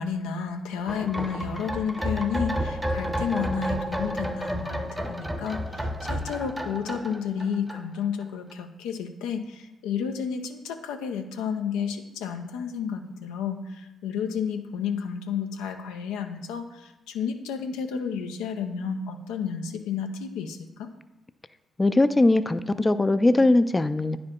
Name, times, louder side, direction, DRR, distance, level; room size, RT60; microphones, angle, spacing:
voice 1, 0.0-20.9, left 6 dB, 90° left, 6 dB, 0.5 m, -31 dB
sound 1, 0.9-8.2 8.5-8.6, equal, 5° right, 0.7 m, -31 dB
voice 2, 21.8-24.2, left 2 dB, 20° left, 13 dB, 0.3 m, -20 dB
9.5 x 4.7 x 3.7 m, 0.92 s
supercardioid pair, 60°, 0 cm